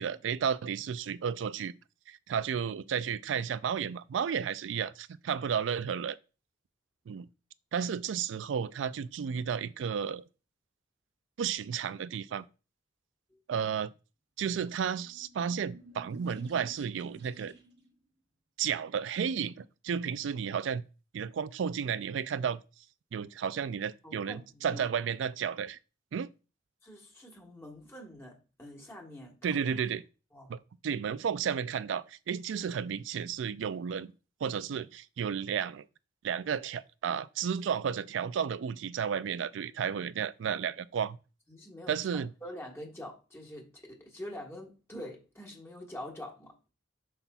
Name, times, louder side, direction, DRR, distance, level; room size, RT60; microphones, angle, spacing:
voice 1, 0.0-1.7 2.1-6.2 7.1-7.3 7.7-10.2 11.4-12.5 13.5-13.9 14.4-17.5 18.6-20.8 21.1-22.6 23.1-25.8 26.1-26.3 29.4-30.0 30.5-34.1 34.4-35.8 36.2-41.2 41.9-42.3, right 7 dB, 80° right, 0.3 m, -33 dB
sound 1, 15.0-17.9, right 2 dB, 60° right, 1.2 m, -53 dB
voice 2, 24.0-24.9 26.8-29.6 30.3-30.6 41.5-46.5, left 1 dB, 15° left, 1.3 m, -45 dB
7.6 x 5.7 x 2.3 m
head